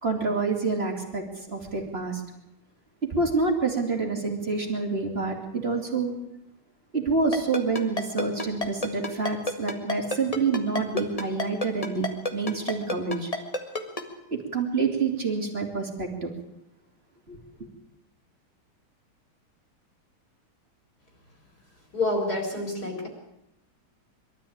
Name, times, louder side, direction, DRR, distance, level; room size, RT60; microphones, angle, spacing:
voice 1, 0.0-2.2 3.1-6.1 6.9-13.3 14.3-16.3 17.3-17.4, right 4 dB, 30° right, 2 dB, 3.1 m, -27 dB
Ringtone, 7.3-14.0, left 2 dB, 20° left, 1.8 m, -28 dB
voice 2, 21.9-23.1, left 2 dB, 45° left, 2 dB, 4.9 m, -28 dB
22.5 x 13.5 x 8.8 m, 0.84 s
omnidirectional pair, 2.2 m